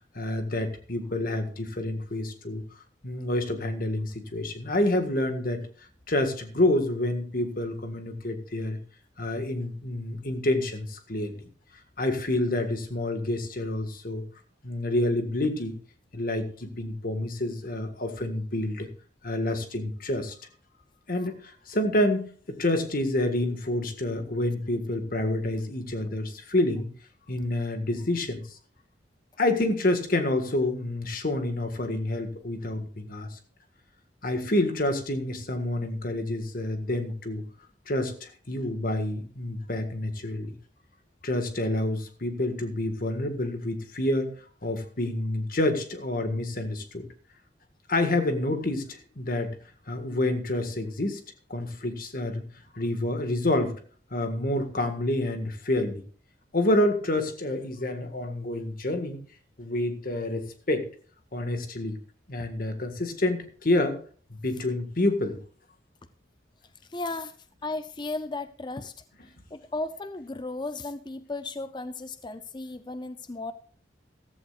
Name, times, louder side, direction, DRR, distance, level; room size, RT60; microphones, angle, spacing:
voice 1, 0.1-2.6 3.0-5.6 6.1-8.8 9.2-11.4 12.0-14.2 14.6-15.7 16.1-18.9 19.2-20.3 21.1-26.9 27.3-28.6 29.4-33.4 34.2-37.4 37.9-40.5 41.2-44.3 44.6-47.0 47.9-49.6 49.9-51.2 51.5-52.4 52.7-53.8 54.1-56.0 56.5-59.2 59.6-60.9 61.3-62.0 62.3-64.0 64.3-65.4, left 1 dB, 50° left, 7 dB, 1.7 m, -28 dB
voice 2, 66.9-67.4 67.6-68.9 69.5-73.5, left 2 dB, 25° left, 11 dB, 0.5 m, -35 dB
14.5 x 14.0 x 2.4 m, 0.42 s
head